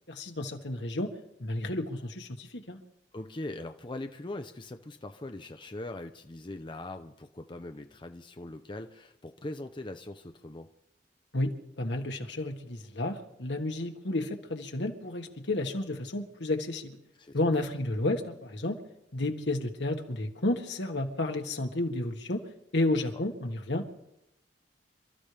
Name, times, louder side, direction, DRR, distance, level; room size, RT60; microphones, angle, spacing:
voice 1, 0.1-1.1 1.4-2.8 11.3-17.0 17.3-18.8 19.1-22.4 22.7-23.9, left 2 dB, 75° left, 4 dB, 1.7 m, -31 dB
voice 2, 3.1-10.7 17.2-17.4, left 2 dB, 25° left, 6 dB, 0.6 m, -41 dB
28.5 x 13.5 x 3.4 m, 0.82 s
head